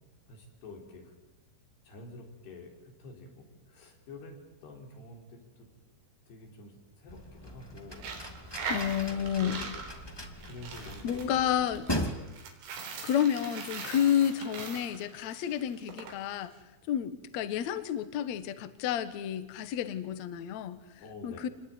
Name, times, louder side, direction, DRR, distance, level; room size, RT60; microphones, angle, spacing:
voice 1, 0.3-1.1 1.8-5.7 6.3-8.1 9.1-9.8 10.4-11.4 21.0-21.5, left 2 dB, 60° left, 2 dB, 6.6 m, -48 dB
sound 1, 7.1-12.1, left 1 dB, 25° left, 0.5 m, -39 dB
Coin (dropping), 7.9-16.1, right 4 dB, 90° right, 6.2 m, -41 dB
voice 2, 8.7-9.6 11.0-11.9 13.0-16.5 16.9-20.8 21.2-21.5, left 9 dB, 85° left, 12 dB, 1.5 m, -30 dB
28.0 x 21.5 x 9.4 m, 1.0 s
omnidirectional pair, 5.4 m